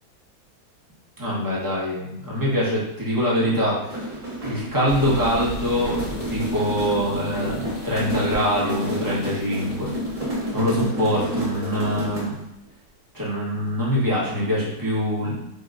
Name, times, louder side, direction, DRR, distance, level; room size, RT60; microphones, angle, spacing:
voice 1, 1.2-4.1 4.4-9.9 10.5-12.4 13.1-15.4, equal, 15° right, -8 dB, 1.0 m, -24 dB
sound 1, 3.8-12.4, equal, 30° right, 1.7 m, -30 dB
sound 2, 4.9-10.5, left 2 dB, 60° left, 0.8 m, -37 dB
4.1 x 3.0 x 2.5 m, 0.80 s
omnidirectional pair, 1.7 m